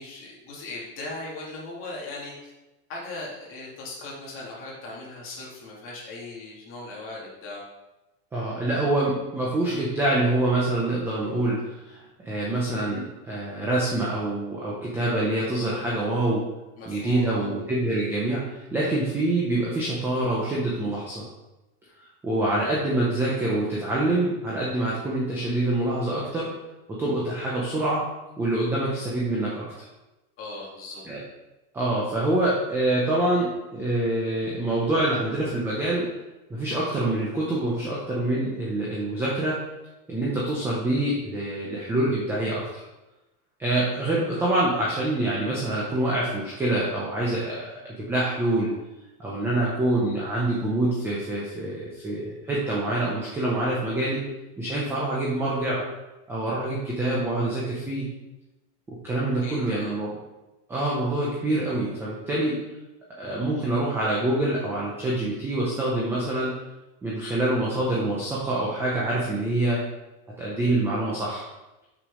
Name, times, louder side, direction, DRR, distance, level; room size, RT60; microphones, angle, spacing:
voice 1, 0.0-2.5 2.9-7.6 16.8-17.5 30.4-31.0 59.4-60.0, left 2 dB, 30° left, -4 dB, 2.3 m, -38 dB
voice 2, 8.3-16.4 16.9-21.3 22.2-26.5 26.9-28.0 28.4-29.7 31.1-31.2 31.7-36.1 36.5-39.6 40.1-42.8 43.6-48.7 49.2-54.2 54.6-55.8 56.3-58.1 58.9-60.1 60.7-62.6 63.2-66.6 67.0-69.8 70.4-71.4, right 1 dB, 5° right, -6 dB, 0.5 m, -26 dB
6.1 x 6.0 x 4.8 m, 1.0 s
supercardioid pair, 175°, 45 cm